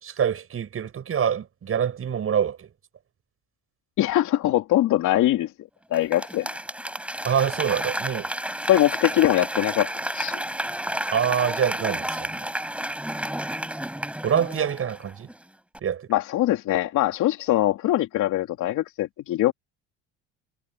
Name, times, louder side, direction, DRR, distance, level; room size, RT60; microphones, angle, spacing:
voice 1, 0.0-2.7 7.2-8.3 11.1-12.4 14.2-15.3 15.8-16.1, right 8 dB, 45° right, 7.4 m, -25 dB
voice 2, 4.0-5.5 5.9-6.6 8.6-10.4 16.1-19.5, left 14 dB, 65° left, 3.0 m, -22 dB
Applause / Crowd, 5.9-15.4 15.7-15.8, right 1 dB, 5° right, 5.9 m, -31 dB
supercardioid pair, 90°, 32 cm